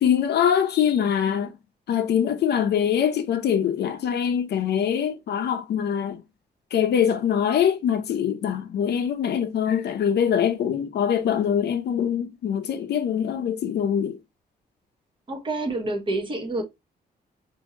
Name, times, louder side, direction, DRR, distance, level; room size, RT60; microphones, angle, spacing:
voice 1, 0.0-1.6 1.9-6.2 6.7-14.2, left 8 dB, 85° left, 0.7 m, -23 dB
voice 2, 15.3-16.6, right 2 dB, 30° right, 1.0 m, -28 dB
4.5 x 2.7 x 3.0 m
wide cardioid pair, 175°, 17 cm